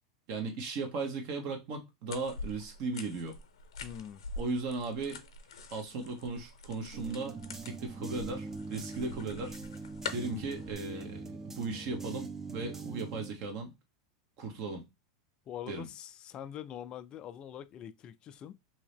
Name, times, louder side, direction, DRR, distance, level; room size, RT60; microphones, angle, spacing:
voice 1, 0.3-3.4 4.4-5.2 5.7-9.5 10.1-13.7 14.4-14.9 15.7-15.9, right 3 dB, 55° right, 1.1 m, -37 dB
sound 1, 2.1-10.7, left 4 dB, 80° left, 0.7 m, -45 dB
voice 2, 3.8-4.2 10.1-10.4 15.5-18.6, left 10 dB, 35° left, 0.3 m, -44 dB
sound 2, 6.9-13.3, right 3 dB, 15° right, 0.6 m, -42 dB
2.8 x 2.8 x 3.4 m
hypercardioid pair, 105°, 3 cm